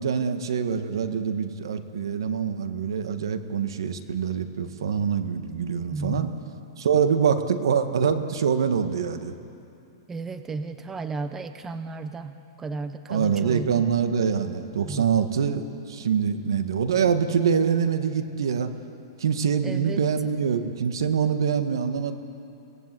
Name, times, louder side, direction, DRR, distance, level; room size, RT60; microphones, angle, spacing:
voice 1, 0.0-6.3 6.8-9.3 13.1-18.7 19.2-22.1, right 7 dB, 85° right, 9 dB, 1.7 m, -25 dB
voice 2, 5.9-6.3 10.1-13.8 14.8-15.0 19.6-20.0, right 4 dB, 10° right, 9 dB, 0.9 m, -34 dB
26.5 x 18.5 x 7.7 m, 2.7 s
hypercardioid pair, 145°, 2 cm